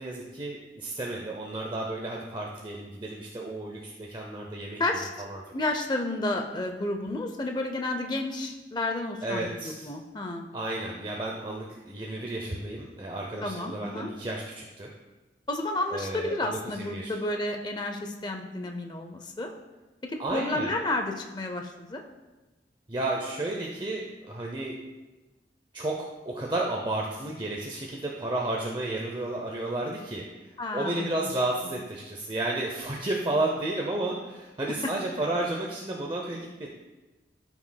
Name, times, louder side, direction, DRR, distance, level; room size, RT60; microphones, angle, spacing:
voice 1, 0.0-4.8 5.2-5.4 9.2-9.9 10.5-14.9 15.9-17.1 20.2-20.7 22.9-24.8 25.7-36.7, right 2 dB, 25° right, -1 dB, 0.6 m, -32 dB
voice 2, 4.8-5.1 5.5-10.5 13.4-14.1 15.5-19.5 20.1-22.0 30.6-31.2, left 2 dB, 25° left, 4 dB, 0.5 m, -31 dB
13.0 x 6.0 x 2.2 m, 1.2 s
head